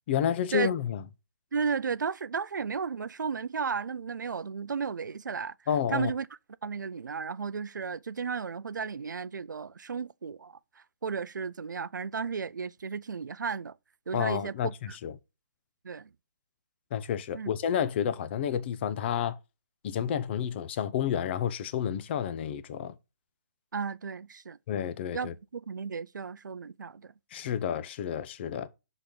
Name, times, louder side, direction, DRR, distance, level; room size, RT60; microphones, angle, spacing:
voice 1, 0.1-1.0 5.7-6.1 14.1-14.7 15.0-15.2 16.9-19.4 19.8-22.9 24.7-25.3 27.3-28.7, left 9 dB, 35° left, 0.6 m, -30 dB
voice 2, 1.5-5.5 5.9-6.3 6.6-10.5 11.0-13.7 14.1-15.0 15.8-16.1 17.3-17.5 23.7-24.6 25.1-27.1, right 5 dB, 85° right, 0.4 m, -34 dB
5.8 x 4.0 x 5.1 m
hypercardioid pair, 145°, 10 cm